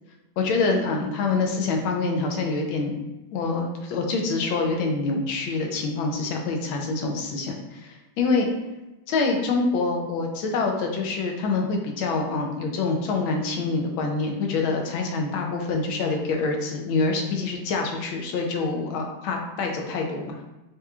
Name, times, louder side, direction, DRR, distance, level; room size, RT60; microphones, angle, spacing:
voice 1, 0.4-3.0 3.3-8.5 9.1-20.4, left 3 dB, 80° left, 2 dB, 1.5 m, -26 dB
5.8 x 3.0 x 2.4 m, 1.0 s
omnidirectional pair, 2.2 m